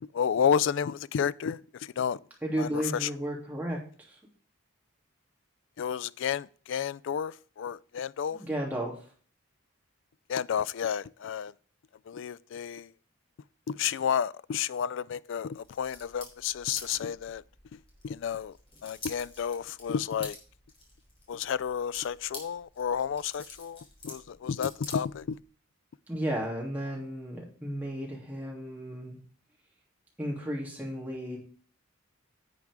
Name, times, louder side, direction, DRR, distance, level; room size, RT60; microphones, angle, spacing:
voice 1, 0.0-2.2 2.6-3.1 5.8-8.4 10.3-11.5 12.1-12.9 13.7-17.4 17.7-17.8 18.0-18.5 18.8-20.4 21.3-25.4, left 7 dB, 60° left, 0.3 m, -31 dB
voice 2, 2.4-3.8 4.1-4.2 8.3-8.9 26.1-29.2 30.2-31.4, right 1 dB, 10° right, 2.9 m, -33 dB
sound 1, 15.5-25.5, left 3 dB, 25° left, 3.1 m, -49 dB
10.5 x 7.8 x 3.6 m
head